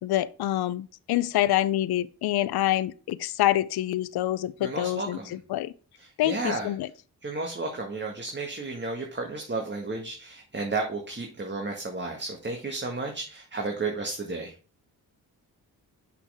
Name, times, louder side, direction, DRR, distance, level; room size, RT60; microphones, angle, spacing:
voice 1, 0.0-5.2 5.5-5.7 6.2-6.9, left 14 dB, 80° left, 0.5 m, -26 dB
voice 2, 4.6-5.4 6.0-6.7 7.2-14.6, right 3 dB, 30° right, 1.7 m, -33 dB
6.2 x 5.8 x 3.5 m
cardioid pair, 65°, 38 cm